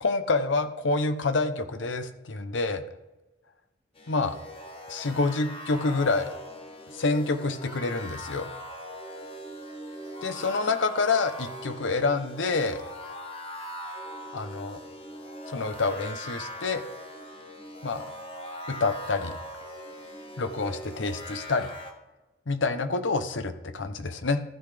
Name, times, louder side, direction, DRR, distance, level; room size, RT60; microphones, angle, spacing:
voice 1, 0.0-2.8 4.1-4.4 4.9-6.3 6.9-8.5 10.2-12.8 14.3-14.8 15.5-16.8 17.8-18.1 18.7-19.4 20.4-21.7 22.5-24.4, left 3 dB, 75° left, 10 dB, 0.7 m, -27 dB
sound 1, 4.0-21.9, equal, 30° left, 1.1 m, -41 dB
15.0 x 7.9 x 3.3 m, 1.1 s
head